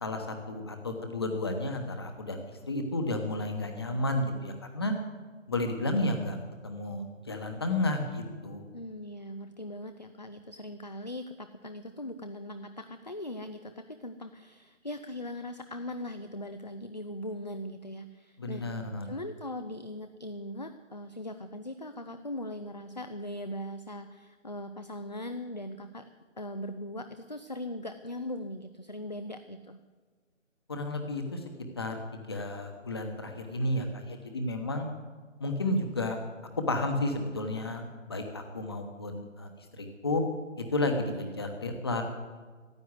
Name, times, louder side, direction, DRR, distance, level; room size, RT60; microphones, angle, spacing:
voice 1, 0.0-4.9 5.5-6.4 6.6-8.6 18.4-19.1 30.7-31.4 31.8-34.9 35.4-36.2 36.7-40.2 40.6-42.0, left 2 dB, 20° left, 5 dB, 1.2 m, -32 dB
voice 2, 8.7-18.7 19.0-26.1 26.4-29.8 41.1-41.4, left 1 dB, 35° left, 9 dB, 0.6 m, -40 dB
15.0 x 9.8 x 9.3 m, 1.4 s
figure-of-eight pair, 170°, 39 cm